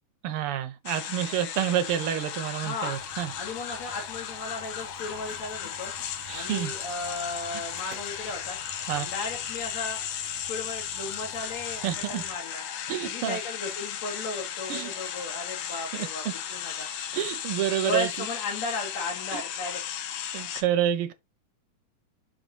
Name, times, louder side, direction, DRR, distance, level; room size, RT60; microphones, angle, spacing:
voice 1, 0.2-3.3 6.3-6.7 8.9-9.1 11.8-12.2 12.9-13.4 14.7-14.9 15.9-16.3 17.1-18.1 19.3-19.4 20.3-21.1, right 11 dB, 75° right, 1.3 m, -28 dB
sound 1, 0.9-20.6, left 9 dB, 85° left, 2.6 m, -36 dB
voice 2, 2.5-3.0 3.4-5.9 6.3-8.6 8.9-12.6 13.0-16.9 17.7-19.8, left 3 dB, 60° left, 3.4 m, -35 dB
sound 2, 2.9-12.4, right 6 dB, 60° right, 2.6 m, -51 dB
7.6 x 5.6 x 2.9 m
omnidirectional pair, 3.6 m